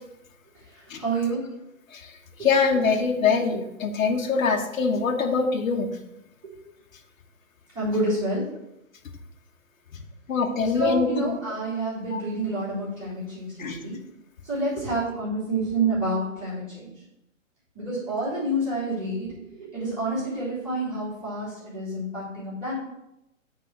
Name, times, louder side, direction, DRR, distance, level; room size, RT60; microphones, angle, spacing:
voice 1, 1.0-1.4 7.7-8.4 10.7-13.9 14.4-16.9 17.7-22.7, right 2 dB, 10° right, -11 dB, 3.1 m, -28 dB
voice 2, 2.4-5.9 10.3-11.4 12.1-12.2 13.6-13.8, left 5 dB, 85° left, 3 dB, 1.3 m, -23 dB
8.3 x 3.9 x 6.1 m, 0.87 s
hypercardioid pair, 160°, 39 cm